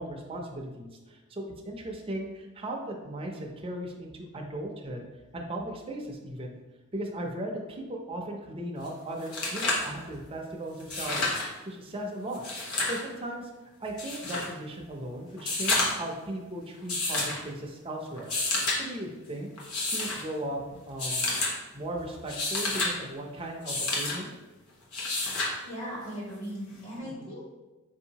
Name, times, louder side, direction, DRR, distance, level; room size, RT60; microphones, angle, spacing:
voice 1, 0.0-5.1 5.3-6.6 6.9-11.2 11.7-12.4 12.9-13.5 13.8-18.3 18.8-19.5 19.9-21.3 21.7-24.3 27.0-27.3, right 1 dB, 25° right, 1 dB, 0.5 m, -37 dB
sound 1, 8.8-8.9 9.2-9.9 10.8-11.5 12.3-13.0 14.0-14.5 15.4-16.1 16.9-17.4 18.2-18.8 19.6-20.2 21.0-21.5 22.1-22.9 23.7-24.2 24.9-25.5 27.0-27.1, left 2 dB, 90° left, 1.0 m, -29 dB
voice 2, 25.6-27.5, equal, 55° left, -8 dB, 1.5 m, -38 dB
4.7 x 2.7 x 2.8 m, 1.1 s
head